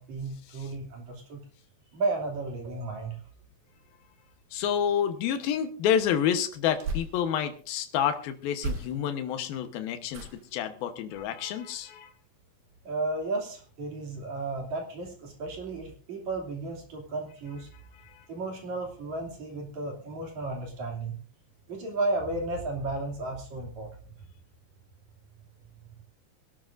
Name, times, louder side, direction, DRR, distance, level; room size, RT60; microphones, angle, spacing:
voice 1, 0.0-1.4 1.9-3.2 12.8-17.7 18.3-21.1 21.7-23.9, right 2 dB, 50° right, 0 dB, 4.0 m, -33 dB
voice 2, 4.5-12.1, left 9 dB, 75° left, 7 dB, 2.9 m, -29 dB
sound 1, 6.0-7.6 8.5-9.3 10.1-10.6 11.1-11.4 11.7-11.8, right 2 dB, 70° right, 4.2 m, -38 dB
24.0 x 12.0 x 2.6 m, 0.43 s
omnidirectional pair, 4.4 m